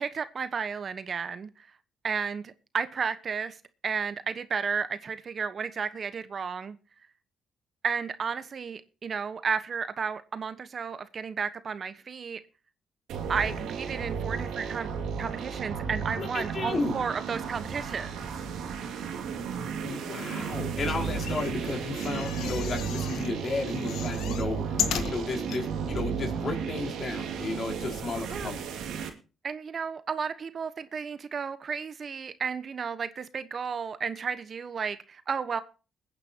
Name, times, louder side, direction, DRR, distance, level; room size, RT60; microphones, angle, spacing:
voice 1, 0.0-1.7 2.0-3.6 3.8-6.8 7.8-12.4 13.3-14.9 15.2-18.1 28.3-28.5 29.4-35.6, right 6 dB, 45° right, 12 dB, 1.1 m, -33 dB
sound 1, 13.1-29.1, right 6 dB, 85° right, 2.4 m, -33 dB
voice 2, 16.2-17.0 19.8-28.7, left 3 dB, 45° left, 2 dB, 4.9 m, -33 dB
sound 2, 21.1-23.3 23.7-25.6 26.2-26.3 26.5-26.6, left 9 dB, 85° left, 1.6 m, -35 dB
21.5 x 9.7 x 2.9 m, 0.33 s
cardioid pair, 90°, 0 cm